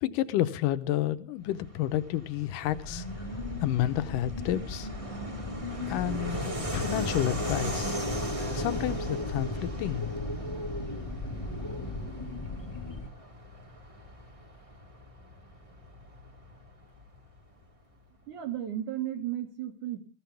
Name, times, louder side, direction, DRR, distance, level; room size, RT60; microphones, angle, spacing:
voice 1, 0.0-3.1 3.6-4.9 5.9-8.0 8.5-10.1, left 13 dB, 80° left, 2.5 m, -30 dB
Fixed-wing aircraft airplane, 1.4-17.6, right 1 dB, 15° right, 1.2 m, -40 dB
sound 1, 2.6-13.1, left 2 dB, 15° left, 0.8 m, -36 dB
voice 2, 18.3-20.0, right 11 dB, 65° right, 3.5 m, -34 dB
21.5 x 15.0 x 3.4 m
omnidirectional pair, 3.9 m